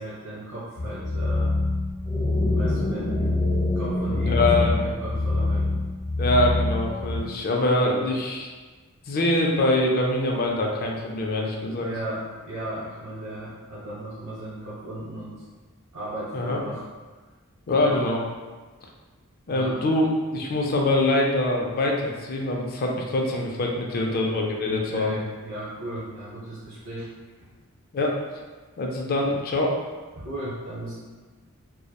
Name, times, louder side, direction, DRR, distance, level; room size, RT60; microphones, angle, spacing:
voice 1, 0.0-1.5 2.5-3.3 3.7-5.8 11.8-15.3 15.9-16.8 17.8-18.0 19.5-19.8 23.9-24.2 24.6-27.1 30.1-30.9, right 1 dB, 60° right, -10 dB, 0.7 m, -35 dB
sound 1, 0.8-7.2, left 2 dB, 85° left, 0.6 m, -25 dB
sound 2, 2.0-5.7, equal, 5° right, 0.7 m, -30 dB
voice 2, 4.2-4.8 6.2-8.5 9.1-11.9 16.3-16.6 17.7-18.2 19.5-20.1 20.3-25.2 27.9-28.2 28.8-29.8, left 1 dB, 45° left, 0 dB, 0.3 m, -24 dB
2.8 x 2.0 x 2.2 m, 1.3 s
head